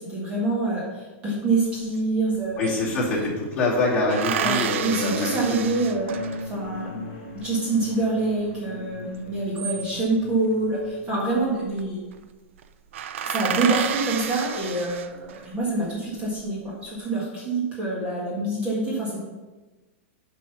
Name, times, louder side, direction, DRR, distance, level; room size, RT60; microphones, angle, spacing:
voice 1, 0.0-2.8 4.4-7.0 7.3-12.0 13.2-19.2, right 2 dB, 15° right, -5 dB, 1.7 m, -26 dB
sound 1, 2.0-2.1 2.3-3.3 4.1-6.6 9.3-10.3 11.4-11.8 12.1-12.2 12.6-12.7 12.9-15.5 16.1-16.7, right 9 dB, 70° right, 0.6 m, -30 dB
voice 2, 2.6-5.6 13.5-13.6, left 2 dB, 20° left, -7 dB, 2.7 m, -25 dB
sound 2, 4.6-11.2, equal, 35° left, 2.6 m, -39 dB
7.4 x 5.4 x 5.6 m, 1.2 s
supercardioid pair, 170°, 7 cm